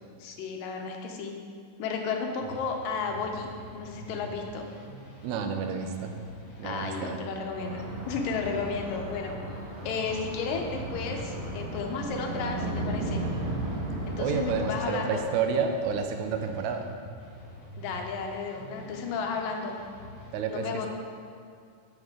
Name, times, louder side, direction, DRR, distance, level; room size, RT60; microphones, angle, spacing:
voice 1, 0.2-1.4 1.8-4.7 6.6-9.4 9.8-13.2 14.1-15.2 17.8-19.8 20.5-20.9, left 5 dB, 85° left, 2 dB, 2.5 m, -33 dB
sound 1, 2.4-20.3, left 1 dB, 50° left, 2.6 m, -46 dB
voice 2, 5.2-6.2 6.6-7.2 14.2-16.9 20.3-20.9, right 6 dB, 80° right, 5 dB, 1.7 m, -30 dB
sound 2, 7.6-14.6, right 1 dB, 55° right, 2.8 m, -35 dB
8.6 x 7.3 x 3.8 m, 2.4 s
omnidirectional pair, 3.9 m